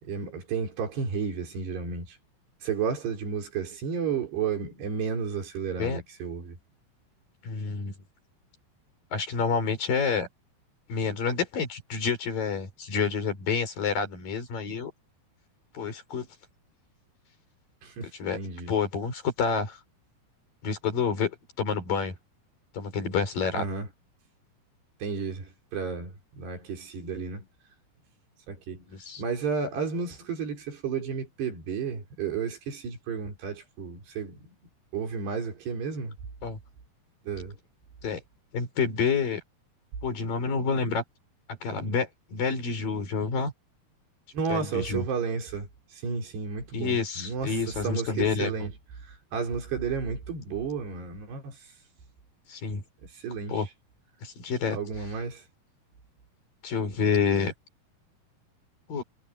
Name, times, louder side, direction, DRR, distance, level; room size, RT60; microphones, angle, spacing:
voice 1, 0.0-2.2 2.6-6.6 17.8-18.7 23.5-23.9 25.0-27.5 28.5-28.9 29.2-34.5 34.9-36.1 37.2-37.6 44.3-48.7 49.0-51.6 53.1-53.6 54.7-55.4, right 5 dB, 85° right, 6.7 m, -32 dB
voice 2, 7.4-7.9 9.1-10.3 10.9-14.9 15.7-16.3 18.2-18.4 18.7-19.8 20.6-22.1 22.7-23.6 28.9-29.2 36.4-36.6 38.0-38.2 38.5-39.4 40.0-41.0 41.6-43.5 44.5-45.0 46.7-48.5 52.5-52.8 53.5-53.7 54.2-54.8 56.6-57.5 58.9-59.0, left 5 dB, 60° left, 6.4 m, -28 dB
omnidirectional pair, 4.7 m